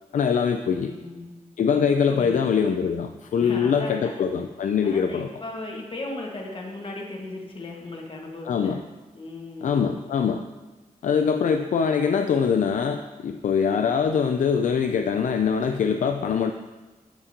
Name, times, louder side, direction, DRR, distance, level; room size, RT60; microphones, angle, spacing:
voice 1, 0.1-0.9 1.6-5.3 8.5-8.8 9.6-10.4 11.0-16.5, left 6 dB, 65° left, 6 dB, 0.4 m, -23 dB
voice 2, 0.8-1.3 2.1-2.4 3.4-4.1 4.8-8.8 9.1-9.9, left 2 dB, 40° left, -1 dB, 1.7 m, -36 dB
14.0 x 5.0 x 2.9 m, 1.2 s
wide cardioid pair, 100°, 14 cm